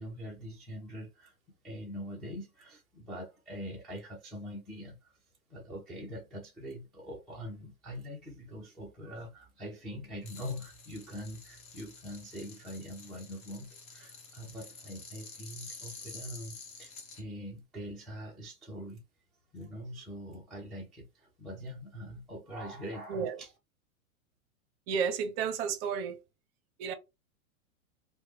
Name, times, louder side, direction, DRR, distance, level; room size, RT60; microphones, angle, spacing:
voice 1, 0.0-1.4 1.6-5.1 5.5-19.0 19.5-23.5, equal, ahead, 0.4 m, -43 dB
sound 1, 10.2-17.2, left 4 dB, 35° left, 1.1 m, -49 dB
voice 2, 24.9-26.2 26.8-26.9, right 6 dB, 45° right, 0.6 m, -32 dB
3.1 x 2.1 x 3.1 m
hypercardioid pair, 120°, 42 cm